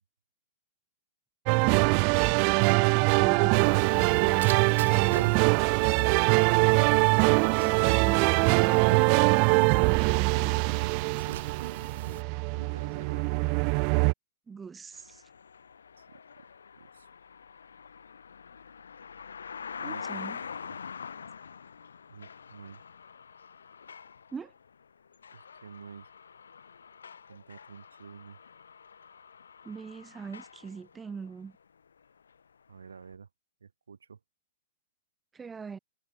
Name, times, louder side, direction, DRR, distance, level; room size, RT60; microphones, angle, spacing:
sound 1, 1.5-14.1, right 40 dB or more, 40° right, 0.8 m, -23 dB
voice 1, 2.9-5.4 7.6-10.5 14.5-15.2 19.8-20.4 24.3-24.5 29.6-31.5 35.3-35.8, right 5 dB, 15° right, 1.9 m, -42 dB
sound 2, 3.6-12.2, right 11 dB, 65° right, 1.2 m, -38 dB
voice 2, 11.2-11.5 12.5-13.4 16.0-16.2 16.7-17.1 19.8-20.3 20.6-20.8 22.1-22.8 25.3-26.1 27.3-28.4 32.7-33.3 33.6-34.2, right 6 dB, 80° right, 3.0 m, -48 dB
sound 3, 14.9-31.6 31.9-32.4 33.1-33.2, left 6 dB, 80° left, 5.5 m, -45 dB
hypercardioid pair, 120°, 0 cm